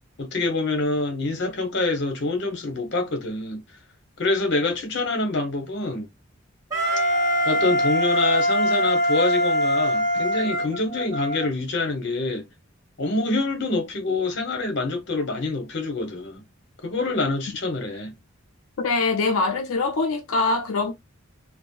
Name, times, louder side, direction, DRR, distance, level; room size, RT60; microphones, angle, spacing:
voice 1, 0.2-3.6 4.2-6.1 7.4-12.4 13.0-16.4 16.8-18.1, left 2 dB, 55° left, 0.9 m, -26 dB
Wind instrument woodwind instrument, 6.7-11.5, equal, 15° right, 1.3 m, -22 dB
voice 2, 18.8-20.9, left 3 dB, 85° left, 0.5 m, -23 dB
3.6 x 2.0 x 2.3 m
head